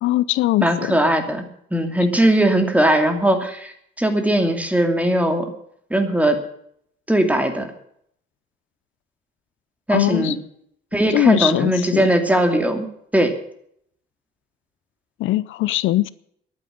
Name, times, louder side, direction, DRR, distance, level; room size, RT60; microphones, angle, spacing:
voice 1, 0.0-1.0 9.9-10.4 11.1-12.1 15.2-16.1, left 16 dB, 85° left, 19 dB, 0.5 m, -21 dB
voice 2, 0.6-5.5 5.9-6.4 7.1-7.7 9.9-10.4 10.9-12.9 13.1-13.3, right 1 dB, 5° right, 6 dB, 2.7 m, -19 dB
10.5 x 9.6 x 9.9 m, 0.68 s
cardioid pair, 90°, 20 cm